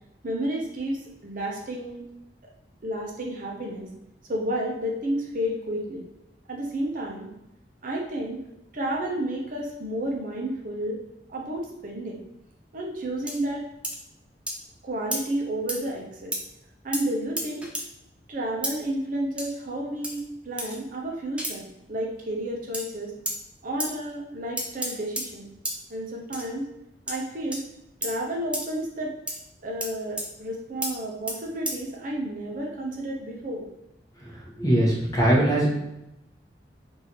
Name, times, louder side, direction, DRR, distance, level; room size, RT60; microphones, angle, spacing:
voice 1, 0.2-2.0 2.8-3.9 4.3-6.0 6.5-7.3 7.8-8.4 8.7-11.0 11.3-12.2 12.7-13.6 14.8-16.4 16.8-17.7 18.3-23.1 23.6-25.5 25.9-26.6 27.1-27.6 28.0-29.1 29.6-33.6, right 1 dB, 50° right, -1 dB, 0.7 m, -31 dB
sound 1, 13.3-13.4 13.8-14.0 14.5-14.6 15.1-15.2 15.7-15.8 16.3-16.4 16.9-17.0 17.4-17.9 18.6-18.7 19.4-19.5 20.0-20.2 20.6-20.8 21.4-21.5 22.7-22.8 23.2-23.4 23.8-23.9 24.6-25.3 25.6-25.8 26.3-26.5 27.1-27.2 27.5-27.6 28.0-28.2 28.5-28.7 29.3-29.4 29.8-29.9 30.2-30.3 30.8-30.9 31.3-31.4 31.6-31.8, right 1 dB, 5° right, 0.5 m, -31 dB
voice 2, 34.6-35.7, right 1 dB, 20° left, -3 dB, 0.9 m, -20 dB
3.2 x 2.7 x 4.4 m, 0.86 s
head